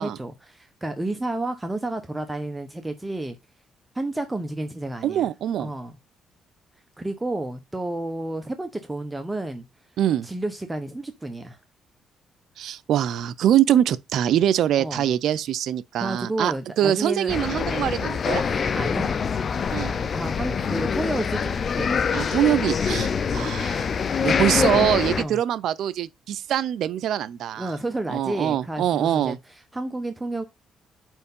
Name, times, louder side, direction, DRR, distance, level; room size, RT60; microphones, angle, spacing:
voice 1, 0.0-3.4 3.9-5.2 5.6-5.9 7.0-9.6 10.2-11.6 14.8-15.1 16.0-17.5 18.4-19.2 19.4-22.0 24.5-24.6 25.1-25.4 27.6-30.4, right 2 dB, 15° right, 1.0 m, -31 dB
voice 2, 5.0-5.7 10.0-10.3 12.6-18.4 19.7-19.9 22.1-23.9 24.2-27.7 28.1-29.4, right 11 dB, 75° right, 0.5 m, -23 dB
sound 1, 17.3-25.2, left 6 dB, 45° left, 0.6 m, -25 dB
5.2 x 4.6 x 5.4 m
cardioid pair, 90°, 0 cm